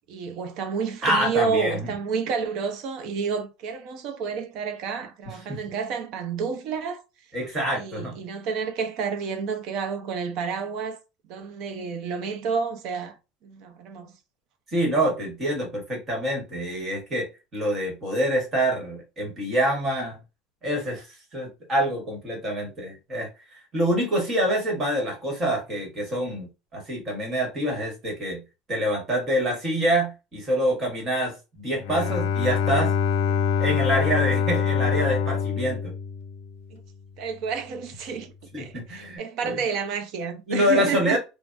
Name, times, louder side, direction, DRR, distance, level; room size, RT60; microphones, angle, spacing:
voice 1, 0.1-7.0 7.7-11.0 11.3-13.2 13.4-14.1 33.3-33.4 36.7-36.8 37.2-41.2, right 5 dB, 45° right, 0.6 m, -30 dB
voice 2, 1.0-1.9 5.3-5.6 7.3-8.2 14.7-20.2 20.6-21.1 21.3-28.4 28.7-32.9 33.6-35.9 38.5-39.6 40.5-41.2, right 1 dB, 20° right, 1.2 m, -26 dB
Bowed string instrument, 31.8-36.7, left 6 dB, 80° left, 0.4 m, -25 dB
3.3 x 2.0 x 2.5 m
cardioid pair, 180°, 0 cm